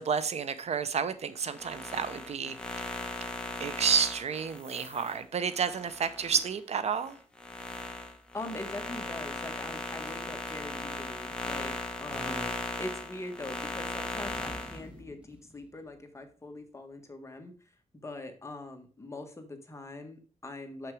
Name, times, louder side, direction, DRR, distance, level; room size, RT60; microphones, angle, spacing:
voice 1, 0.0-2.8 3.6-7.2 12.2-12.5, right 6 dB, 65° right, 12 dB, 0.7 m, -31 dB
sound 1, 1.4-6.5 7.0-14.8, left 2 dB, 10° left, 1.4 m, -38 dB
voice 2, 8.3-11.7 12.0-12.5 12.8-17.5 18.0-20.9, left 2 dB, 25° left, 5 dB, 1.6 m, -42 dB
sound 2, 9.8-10.8 12.5-12.9 13.2-13.5 14.3-16.6, right 1 dB, 10° right, 0.9 m, -53 dB
7.1 x 6.0 x 4.8 m, 0.40 s
wide cardioid pair, 120°, 12 cm